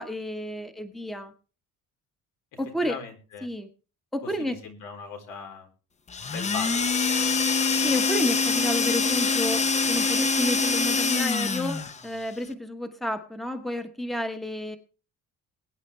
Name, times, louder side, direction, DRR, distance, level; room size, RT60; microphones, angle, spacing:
voice 1, 0.0-1.3 2.6-3.0 3.4-3.7 4.1-4.6 7.8-14.8, equal, ahead, 7 dB, 1.1 m, -31 dB
voice 2, 2.8-3.5 4.2-5.7 6.3-6.9 7.2-7.4, left 5 dB, 80° left, 4 dB, 4.0 m, -39 dB
sound 1, 6.1-12.0, left 4 dB, 20° left, 0.7 m, -24 dB
22.0 x 9.7 x 3.2 m, 0.36 s
cardioid pair, 165°, 32 cm